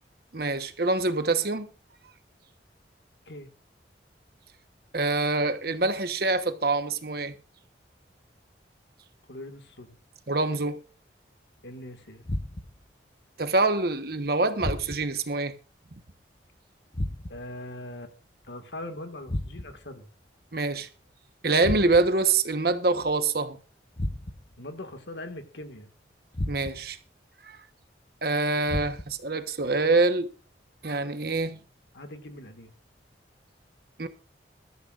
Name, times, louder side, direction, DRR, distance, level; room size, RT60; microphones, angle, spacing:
voice 1, 0.3-1.7 4.9-7.3 10.3-10.8 13.4-15.5 20.5-20.9 21.4-23.6 26.5-27.0 27.4-27.6 28.2-30.3 30.8-31.6 34.0-34.1, right 3 dB, 55° right, 1.2 m, -25 dB
voice 2, 9.3-10.0 11.6-12.3 17.3-18.1 18.4-20.1 24.6-25.9 31.9-32.7, left 1 dB, 70° left, 1.9 m, -41 dB
sound 1, 12.2-12.9 14.6-15.2 16.9-17.6 19.3-19.9 21.6-22.3 24.0-24.6 26.3-27.0 28.7-29.3, left 1 dB, 35° left, 0.9 m, -33 dB
21.5 x 13.5 x 2.5 m
head